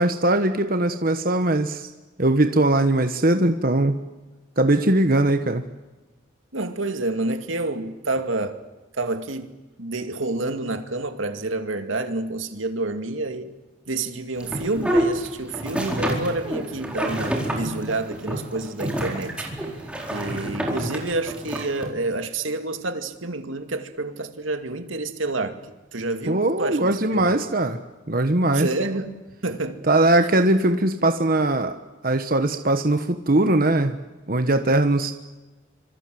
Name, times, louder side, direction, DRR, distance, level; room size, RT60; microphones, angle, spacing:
voice 1, 0.0-1.9 2.2-4.0 4.6-5.6 26.3-27.8 28.1-28.7 29.9-31.8 32.0-34.0 34.3-35.1, right 2 dB, 45° right, 1.3 m, -20 dB
voice 2, 6.5-8.6 8.9-9.5 9.8-13.5 13.9-19.3 20.1-25.6 25.9-27.4 28.5-29.1 29.4-29.8, right 2 dB, 85° right, 2.4 m, -28 dB
sound 1, 14.4-21.9, right 1 dB, 5° right, 4.4 m, -28 dB
26.5 x 26.0 x 7.8 m
head